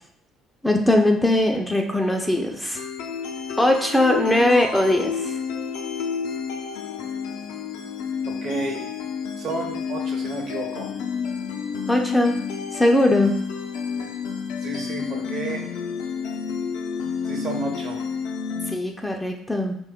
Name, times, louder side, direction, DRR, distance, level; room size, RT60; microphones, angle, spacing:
voice 1, 0.6-2.8 3.6-5.3 11.9-12.4 12.7-13.3 18.7-19.8, left 1 dB, 5° left, 3 dB, 0.3 m, -20 dB
sound 1, 2.8-18.8, left 6 dB, 85° left, 0.4 m, -30 dB
voice 2, 8.4-8.8 9.4-10.9 14.0-14.1 14.6-15.6 17.3-18.0, right 2 dB, 55° right, 3 dB, 0.8 m, -31 dB
3.3 x 2.2 x 3.5 m, 0.69 s
cardioid pair, 95°, 0 cm